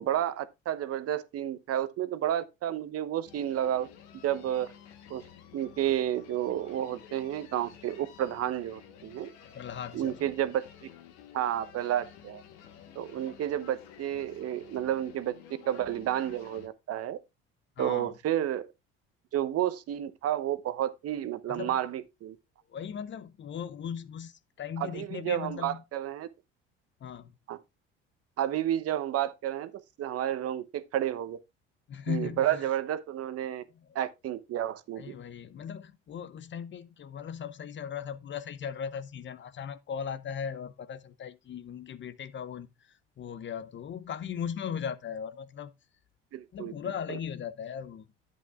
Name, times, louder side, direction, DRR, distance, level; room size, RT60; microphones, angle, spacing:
voice 1, 0.0-3.9 4.2-4.7 5.1-5.2 5.5-9.3 9.9-10.9 11.3-12.4 12.9-15.3 15.6-17.2 17.8-18.7 19.3-22.4 24.8-26.3 27.5-27.6 28.4-29.7 30.0-31.4 32.1-33.6 33.9-35.1 46.3-46.7 47.1-47.2, right 11 dB, 55° right, 1.0 m, -31 dB
sound 1, 3.3-16.7, left 9 dB, 75° left, 1.5 m, -52 dB
voice 2, 9.5-10.2 17.8-18.1 21.5-21.7 22.7-25.8 27.0-27.3 31.9-32.6 35.0-45.7 46.5-48.1, left 7 dB, 40° left, 0.8 m, -38 dB
11.0 x 8.4 x 2.3 m
hypercardioid pair, 70°, 29 cm